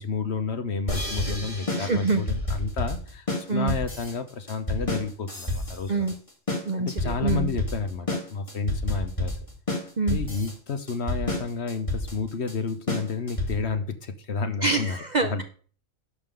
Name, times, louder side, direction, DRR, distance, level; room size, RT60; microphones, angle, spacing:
voice 1, 0.0-5.9 6.8-9.4 10.1-15.0 15.3-15.4, left 4 dB, 55° left, 9 dB, 1.2 m, -31 dB
sound 1, 0.9-13.8, left 1 dB, 25° left, 2.0 m, -30 dB
voice 2, 1.8-2.2 3.5-3.8 5.9-6.1 6.6-7.5 10.0-10.2 14.6-15.4, right 4 dB, 40° right, 7 dB, 0.7 m, -26 dB
11.5 x 3.8 x 6.7 m, 0.42 s
omnidirectional pair, 1.4 m